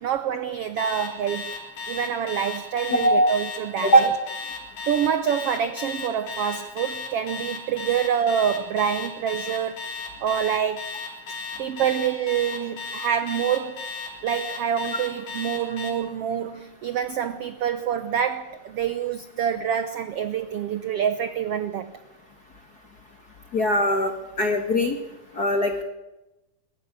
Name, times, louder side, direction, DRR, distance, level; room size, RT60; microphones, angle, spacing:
voice 1, 0.0-1.5 1.9-4.1 4.9-9.9 10.2-10.9 11.6-13.8 14.2-22.0, right 8 dB, 75° right, 11 dB, 1.3 m, -26 dB
Alarm, 0.8-15.9, left 4 dB, 75° left, 5.9 m, -34 dB
voice 2, 3.0-3.3 3.8-4.0 23.5-25.0 25.4-25.8, equal, 45° left, 4 dB, 1.4 m, -20 dB
21.5 x 14.5 x 9.7 m, 1.0 s
omnidirectional pair, 3.8 m